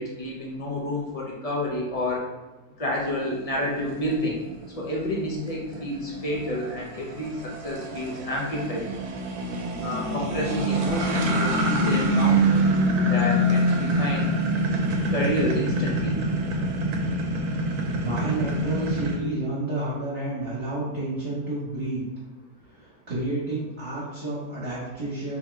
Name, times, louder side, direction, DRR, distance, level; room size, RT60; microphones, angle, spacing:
voice 1, 0.0-2.2 2.8-4.4 4.8-8.9 9.8-12.6 13.1-14.3 15.1-16.2, left 1 dB, 45° left, -3 dB, 0.4 m, -29 dB
sound 1, 3.0-19.2, right 1 dB, 80° right, 1.1 m, -25 dB
voice 2, 17.9-22.0 22.8-25.4, right 2 dB, 45° right, -9 dB, 1.3 m, -30 dB
3.5 x 3.3 x 3.1 m, 1.1 s
omnidirectional pair, 1.6 m